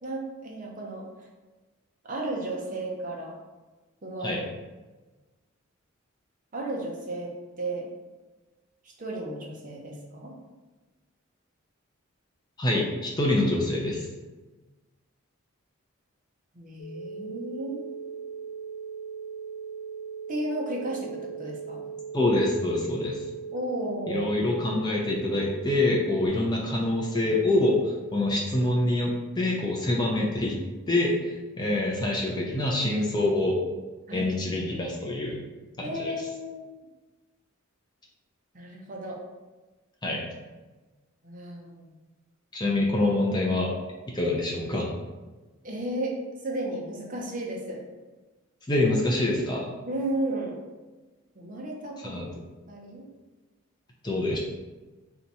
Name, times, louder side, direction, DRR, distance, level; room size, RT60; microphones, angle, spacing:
voice 1, 0.0-1.3 2.0-3.3 4.0-4.4 6.5-7.9 8.8-10.3 16.5-17.9 20.3-21.8 23.5-24.3 34.1-34.3 35.8-36.7 38.5-39.2 41.2-41.9 45.6-46.2 46.4-47.8 49.9-50.6 51.4-52.3 52.7-53.1, right 1 dB, 40° right, -1 dB, 0.7 m, -34 dB
voice 2, 12.6-14.1 22.1-23.2 24.1-30.6 30.9-33.6 34.1-35.4 35.8-36.1 40.0-40.3 42.5-43.7 44.1-44.9 48.7-49.7 52.0-52.3 54.0-54.4, left 2 dB, 20° left, -1 dB, 0.5 m, -26 dB
sound 1, 16.8-26.3, right 6 dB, 85° left, 1.0 m, -38 dB
3.4 x 2.8 x 4.1 m, 1.2 s
head